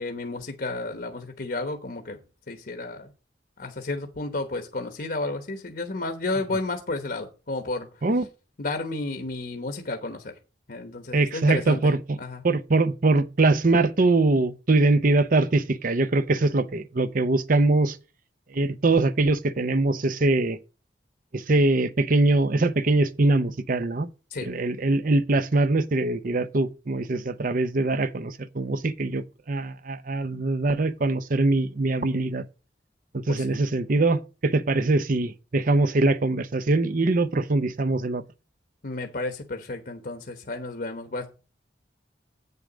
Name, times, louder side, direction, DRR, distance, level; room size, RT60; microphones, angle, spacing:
voice 1, 0.0-2.2 2.5-3.1 3.6-7.9 8.6-10.3 10.7-12.4 24.3-24.5 33.3-33.6 38.8-41.3, left 2 dB, 55° left, 1.0 m, -32 dB
voice 2, 11.1-12.2 12.4-18.0 18.5-20.6 21.3-24.1 24.4-32.4 33.1-38.2, right 2 dB, 50° right, 0.7 m, -23 dB
8.3 x 6.8 x 5.0 m
head